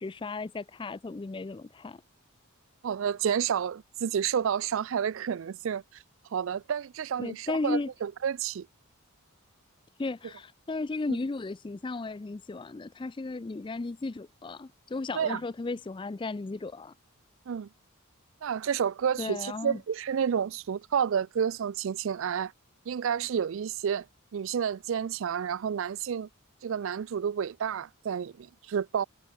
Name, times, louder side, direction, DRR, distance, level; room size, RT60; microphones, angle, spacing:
voice 1, 0.0-2.0 7.2-7.9 10.0-16.9 19.2-19.8, left 3 dB, 20° left, 0.4 m, -35 dB
voice 2, 2.8-5.8 6.3-8.7 15.1-15.4 17.5-17.7 18.4-22.5 22.9-24.0 24.3-26.3 26.6-29.0, right 8 dB, 60° right, 0.3 m, -30 dB
head